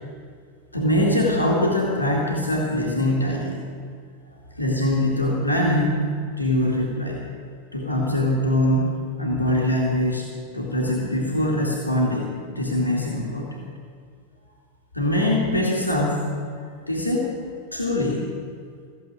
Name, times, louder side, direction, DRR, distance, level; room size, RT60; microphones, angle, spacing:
voice 1, 0.7-3.6 4.6-6.1 6.4-7.2 7.7-10.3 10.5-13.7 14.9-16.4 16.9-17.3 17.7-18.3, left 1 dB, 85° left, -3 dB, 2.2 m, -23 dB
15.5 x 7.7 x 9.2 m, 2.2 s
figure-of-eight pair, 90°, 0 cm